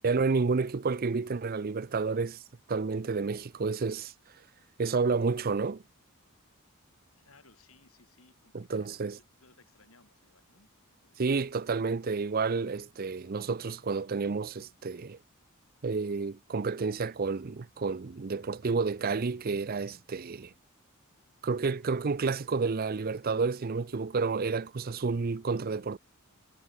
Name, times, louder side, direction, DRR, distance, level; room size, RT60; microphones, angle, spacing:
voice 1, 0.0-2.4 2.7-4.1 4.8-5.8 8.5-9.1 11.2-15.2 15.8-20.5 21.4-26.0, right 4 dB, 40° right, 0.5 m, -30 dB
voice 2, 7.2-10.7 11.0-11.6, left 3 dB, 70° left, 4.7 m, -62 dB
head